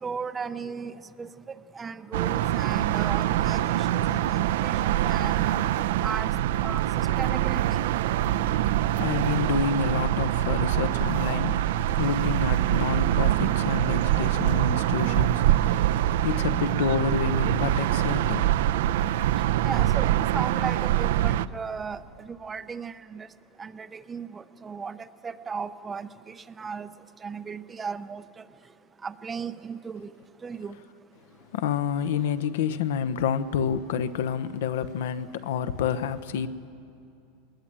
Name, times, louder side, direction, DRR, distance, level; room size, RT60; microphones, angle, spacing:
voice 1, 0.0-5.6 6.0-6.4 6.6-7.8 19.6-23.3 23.6-26.9 27.2-28.4 29.0-30.1 30.4-30.8, right 5 dB, 15° right, 0.5 m, -36 dB
sound 1, 2.1-21.5, right 13 dB, 70° right, 0.5 m, -24 dB
voice 2, 8.6-18.5 31.5-36.5, left 7 dB, 80° left, 1.0 m, -29 dB
21.0 x 19.5 x 8.9 m
supercardioid pair, 170°, 0 cm